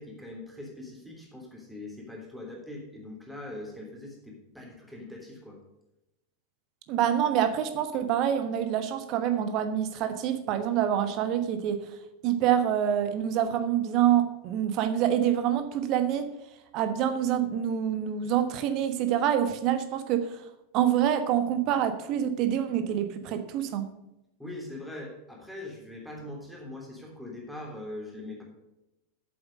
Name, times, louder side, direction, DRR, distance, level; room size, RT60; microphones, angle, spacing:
voice 1, 0.0-5.6 24.4-28.4, left 2 dB, ahead, -1 dB, 3.2 m, -42 dB
voice 2, 6.9-11.9 12.2-16.3 16.7-20.4 20.7-23.9, right 10 dB, 40° right, 9 dB, 1.2 m, -26 dB
8.6 x 7.6 x 6.4 m, 0.91 s
figure-of-eight pair, 90°, 0 cm